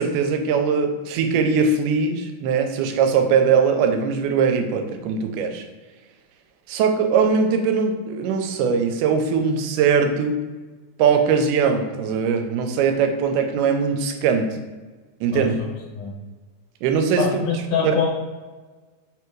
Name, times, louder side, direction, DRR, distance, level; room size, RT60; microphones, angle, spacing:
voice 1, 0.0-5.6 6.7-10.5 11.0-14.6 15.2-15.6 16.8-17.3 17.8-18.1, right 6 dB, 90° right, 6 dB, 2.1 m, -21 dB
voice 2, 17.2-18.1, left 6 dB, 70° left, -3 dB, 1.9 m, -23 dB
4.7 x 3.4 x 3.0 m, 1.3 s
omnidirectional pair, 3.5 m